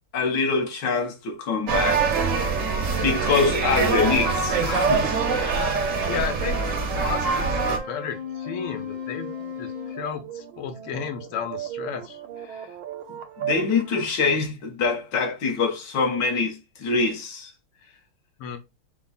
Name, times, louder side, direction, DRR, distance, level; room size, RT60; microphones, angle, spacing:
voice 1, 0.1-2.1 3.0-5.4 12.5-12.7 13.1-17.5, left 4 dB, 60° left, 1.7 m, -25 dB
sound 1, 1.7-7.8, right 5 dB, 55° right, 1.0 m, -24 dB
voice 2, 6.1-6.6 6.9-9.3 9.6-12.2 18.4-18.6, left 8 dB, 90° left, 1.7 m, -33 dB
Wind instrument woodwind instrument, 7.2-10.1, left 2 dB, 30° left, 0.7 m, -33 dB
sound 2, 7.4-14.2, right 11 dB, 80° right, 1.6 m, -38 dB
5.7 x 2.3 x 4.0 m
omnidirectional pair, 2.3 m